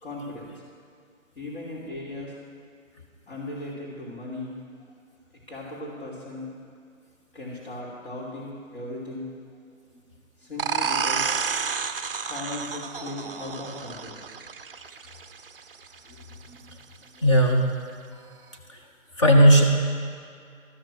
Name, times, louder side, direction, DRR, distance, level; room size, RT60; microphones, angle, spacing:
voice 1, 0.0-0.6 1.4-2.3 3.3-4.6 5.5-6.5 7.3-9.3 10.4-11.3 12.3-14.3, left 2 dB, 50° left, -7 dB, 3.0 m, -37 dB
sound 1, 10.6-16.0, right 6 dB, 40° right, 0.6 m, -30 dB
voice 2, 17.2-17.7 19.2-19.6, equal, 20° left, 2 dB, 1.0 m, -16 dB
13.5 x 9.4 x 6.2 m, 2.2 s
hypercardioid pair, 165°, 41 cm